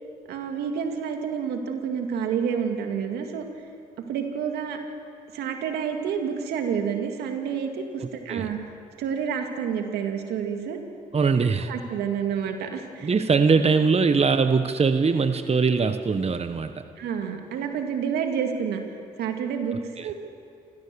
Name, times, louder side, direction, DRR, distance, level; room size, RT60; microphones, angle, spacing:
voice 1, 0.3-3.5 4.1-4.8 5.3-8.6 9.0-10.8 11.7-13.1 17.0-18.8 19.2-20.1, right 7 dB, 85° right, 4 dB, 2.2 m, -29 dB
voice 2, 8.0-8.5 11.1-11.7 13.0-16.8 20.0-20.1, right 5 dB, 40° right, 9 dB, 1.2 m, -22 dB
27.0 x 15.5 x 7.0 m, 2.4 s
supercardioid pair, 50°, 16 cm